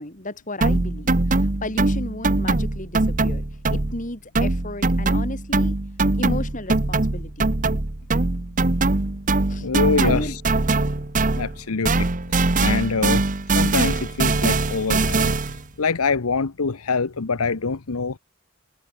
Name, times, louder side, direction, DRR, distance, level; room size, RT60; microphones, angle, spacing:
voice 1, 0.0-5.8 6.2-7.5 9.5-9.7 10.0-10.4, left 1 dB, 35° left, 6.2 m, -33 dB
sound 1, 0.6-4.1 4.3-11.6 11.8-15.6, right 2 dB, 35° right, 1.0 m, -22 dB
voice 2, 9.6-10.3 11.3-12.1 12.6-15.4 15.8-18.2, left 4 dB, 85° left, 0.9 m, -24 dB
head